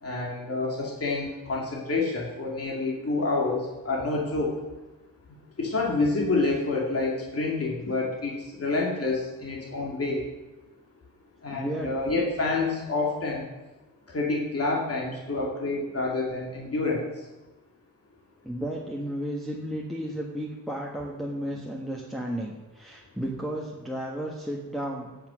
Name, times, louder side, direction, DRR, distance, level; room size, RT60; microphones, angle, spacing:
voice 1, 0.0-4.5 5.6-10.2 11.4-13.4 14.1-17.1, left 3 dB, 40° left, -3 dB, 2.5 m, -28 dB
voice 2, 11.5-11.9 18.4-25.1, equal, ahead, -3 dB, 1.4 m, -33 dB
17.0 x 5.8 x 6.3 m, 1.1 s
wide cardioid pair, 105°, 36 cm